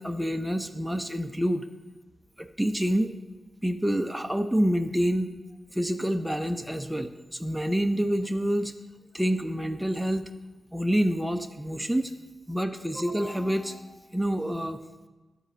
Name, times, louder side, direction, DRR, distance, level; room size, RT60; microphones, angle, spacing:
voice 1, 0.0-1.7 2.4-3.2 3.6-5.3 5.7-8.7 9.1-10.3 10.7-12.1 12.5-14.8, equal, 5° right, 6 dB, 0.5 m, -27 dB
11.5 x 4.1 x 5.1 m, 1.2 s
wide cardioid pair, 110°, 0 cm